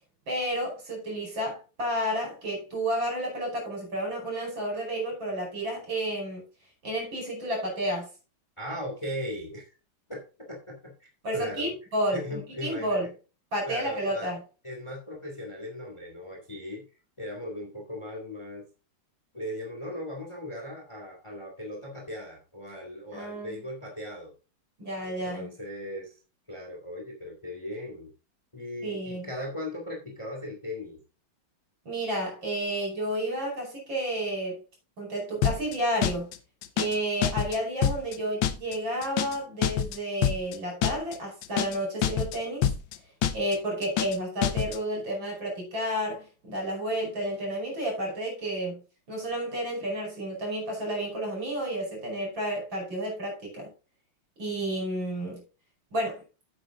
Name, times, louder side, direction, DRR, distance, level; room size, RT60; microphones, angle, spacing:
voice 1, 0.3-6.4 6.8-8.1 11.2-13.1 13.5-14.4 23.1-23.6 24.8-25.5 28.8-29.3 31.9-34.6 35.0-36.3 36.8-42.7 43.3-48.8 49.1-53.7 54.4-55.4 55.9-56.2, right 1 dB, 60° right, 0 dB, 5.8 m, -31 dB
voice 2, 8.6-9.7 10.1-10.2 10.5-11.7 12.1-13.0 13.6-14.3 14.6-16.9 17.2-18.7 19.3-24.3 25.0-26.2 26.5-28.1 28.5-31.0, left 1 dB, 15° left, 1 dB, 2.2 m, -38 dB
sound 1, 35.4-35.8 36.0-36.4 36.6-37.0 37.2-37.6 37.8-38.2 38.4-38.8 39.0-39.4 39.6-40.0 40.2-40.6 40.8-41.2 41.4-41.8 42.0-42.4 42.6-43.0 43.2-43.6 43.8-44.2 44.4-44.8, left 9 dB, 70° left, 1.4 m, -26 dB
9.1 x 7.8 x 3.7 m, 0.32 s
omnidirectional pair, 2.4 m